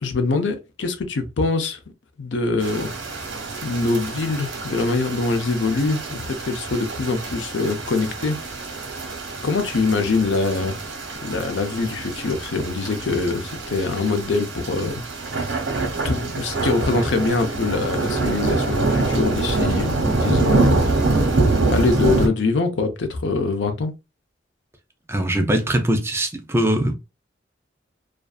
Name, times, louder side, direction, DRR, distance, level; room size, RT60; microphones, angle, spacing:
voice 1, 0.0-1.8 2.2-2.9 3.6-8.4 9.4-10.7 11.2-15.0 16.0-20.9 21.7-23.9, left 3 dB, 80° left, 0.6 m, -23 dB
sound 1, 2.6-22.3, right 3 dB, 85° right, 0.9 m, -25 dB
voice 2, 25.1-26.9, right 1 dB, 15° right, 0.4 m, -21 dB
2.5 x 2.3 x 2.4 m
head